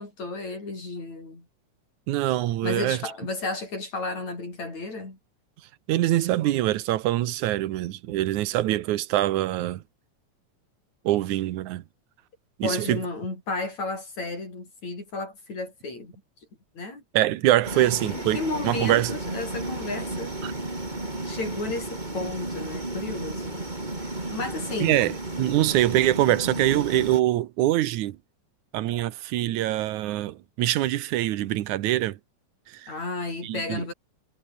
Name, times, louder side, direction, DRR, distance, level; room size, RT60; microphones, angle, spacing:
voice 1, 0.0-1.4 2.6-5.2 12.6-16.1 16.8-17.0 17.7-20.3 21.2-23.7 24.0-25.1 32.9-33.9, left 3 dB, 70° left, 9.3 m, -33 dB
voice 2, 2.1-3.0 5.9-9.8 11.0-11.8 12.6-13.0 17.1-19.1 20.4-20.5 24.8-25.1 25.4-28.2 28.7-32.2 32.7-32.9 33.4-33.8, right 14 dB, 90° right, 2.4 m, -24 dB
sound 1, 17.6-27.2, right 2 dB, 15° right, 3.6 m, -33 dB
omnidirectional pair, 3.3 m